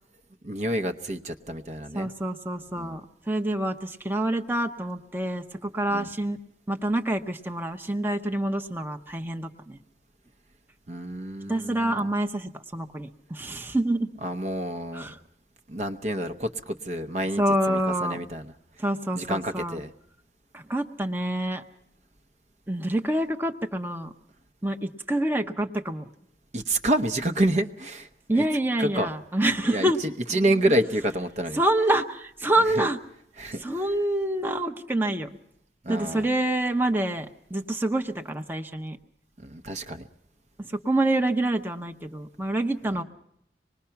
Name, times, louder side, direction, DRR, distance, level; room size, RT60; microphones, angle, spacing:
voice 1, 0.4-2.1 2.8-2.9 5.9-6.1 10.9-12.1 14.2-15.1 15.7-17.4 17.7-18.5 19.1-19.9 26.5-28.1 28.3-28.4 28.8-29.1 29.6-31.6 32.7-32.8 33.4-33.6 35.8-36.3 39.4-40.1, right 1 dB, 40° right, 8 dB, 0.8 m, -28 dB
voice 2, 1.9-6.4 6.7-9.8 11.5-14.1 14.9-15.2 17.4-18.2 18.8-19.8 20.5-21.6 22.7-24.1 24.6-26.1 28.3-30.0 30.3-30.6 31.5-33.0 33.6-35.3 35.9-39.0 40.6-43.0, right 1 dB, 10° right, 5 dB, 0.8 m, -27 dB
25.5 x 20.0 x 5.8 m, 0.71 s
head